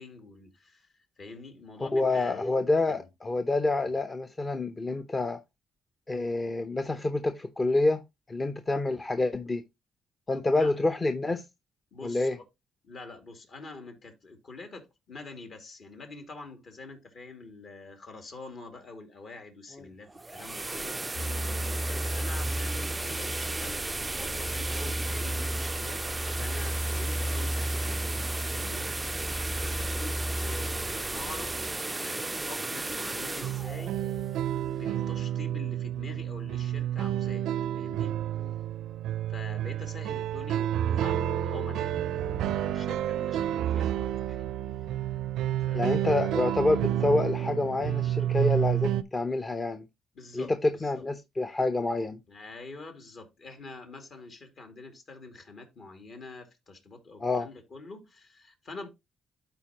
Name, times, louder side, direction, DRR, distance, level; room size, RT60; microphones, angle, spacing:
voice 1, 0.0-2.5 2.9-3.1 3.8-3.9 10.3-10.8 11.9-12.3 12.8-23.8 24.2-26.0 26.3-28.1 28.5-29.2 29.6-34.0 34.7-37.5 37.7-38.2 39.3-44.5 45.7-46.2 46.7-46.8 50.1-51.0 52.3-58.9, left 3 dB, 55° left, 2.5 m, -46 dB
voice 2, 1.9-5.4 6.1-8.0 8.3-9.6 10.3-11.4 12.0-12.4 38.4-38.5 45.7-49.8 50.3-52.2 57.2-57.5, left 2 dB, 25° left, 0.7 m, -27 dB
sound 1, 20.0-35.0, right 2 dB, 15° right, 0.3 m, -35 dB
sound 2, 21.1-31.7, equal, 85° left, 3.4 m, -34 dB
sound 3, 33.4-49.0, right 11 dB, 85° right, 0.4 m, -30 dB
12.0 x 4.5 x 2.9 m
cardioid pair, 90°, 0 cm